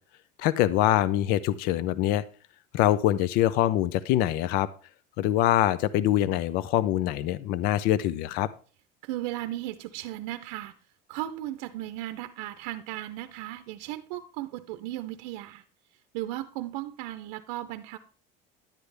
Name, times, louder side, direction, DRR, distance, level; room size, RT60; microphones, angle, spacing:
voice 1, 0.4-2.2 2.7-4.7 5.2-8.5, left 13 dB, 50° left, 0.5 m, -24 dB
voice 2, 9.0-10.7 11.1-15.6 16.1-18.0, right 14 dB, 85° right, 0.7 m, -36 dB
10.5 x 9.7 x 3.3 m
cardioid pair, 175°, 20 cm